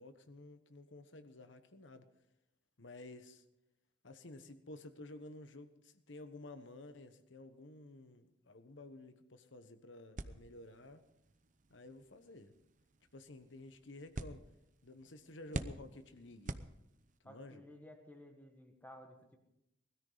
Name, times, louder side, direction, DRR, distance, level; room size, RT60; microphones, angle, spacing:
voice 1, 0.0-2.0 2.8-3.4 4.0-11.0 11.7-12.5 13.1-14.4 14.8-16.6 17.2-17.6, left 2 dB, 65° left, 10 dB, 1.2 m, -53 dB
sound 1, 10.2-17.3, right 2 dB, 40° right, 0.7 m, -48 dB
voice 2, 17.3-19.4, left 1 dB, 10° left, 3 dB, 1.6 m, -55 dB
20.0 x 13.5 x 4.0 m, 0.85 s
head